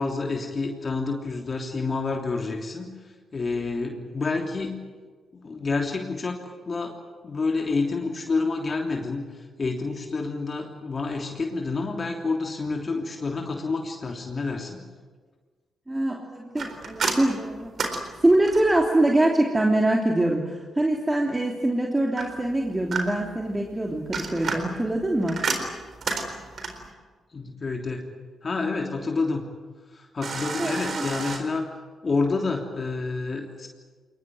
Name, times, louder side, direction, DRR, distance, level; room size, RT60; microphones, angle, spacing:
voice 1, 0.0-2.9 3.3-4.8 5.4-6.4 6.6-6.9 7.2-14.8 27.3-28.0 28.4-29.4 29.9-33.7, left 3 dB, 45° left, 2 dB, 3.1 m, -28 dB
voice 2, 15.9-17.7 18.2-25.4 30.6-31.0, right 1 dB, 20° right, 0 dB, 3.2 m, -24 dB
sound 1, 16.6-18.8 22.2-23.4 23.9-26.9 30.2-31.4, right 4 dB, 60° right, 4.1 m, -31 dB
23.0 x 20.0 x 9.4 m, 1.5 s
supercardioid pair, 60°, 0 cm